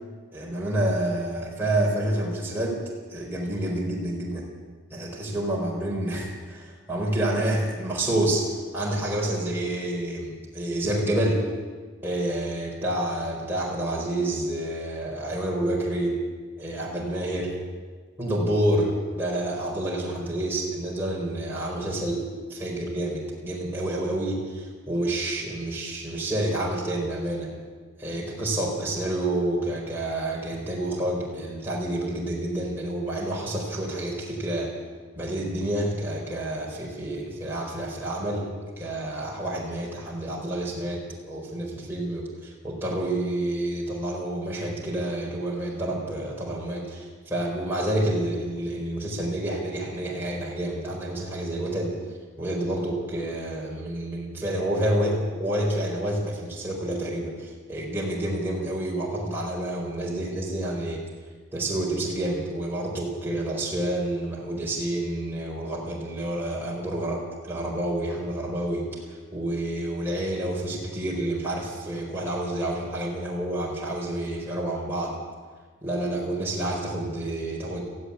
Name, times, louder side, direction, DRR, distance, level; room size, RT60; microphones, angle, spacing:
voice 1, 0.3-2.8 3.1-4.5 4.9-11.5 12.0-16.2 16.6-17.5 18.2-22.2 22.5-27.5 28.0-34.7 35.1-38.5 38.8-52.0 52.4-61.0 61.5-75.1 75.8-77.8, right 1 dB, 10° right, -4 dB, 4.5 m, -28 dB
17.5 x 15.5 x 9.9 m, 1.5 s
head